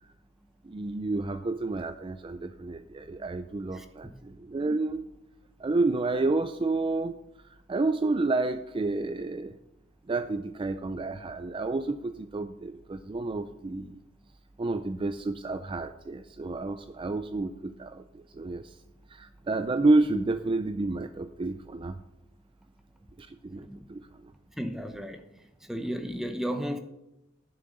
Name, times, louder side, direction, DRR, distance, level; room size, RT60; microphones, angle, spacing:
voice 1, 0.6-5.0 5.6-7.2 7.7-9.6 10.1-14.0 14.6-18.8 19.1-22.0 23.2-24.0, right 2 dB, 25° right, 0.4 m, -30 dB
voice 2, 3.7-4.2 23.6-23.9 24.6-25.2 25.6-26.8, equal, ahead, 0.8 m, -34 dB
11.0 x 6.6 x 5.3 m
head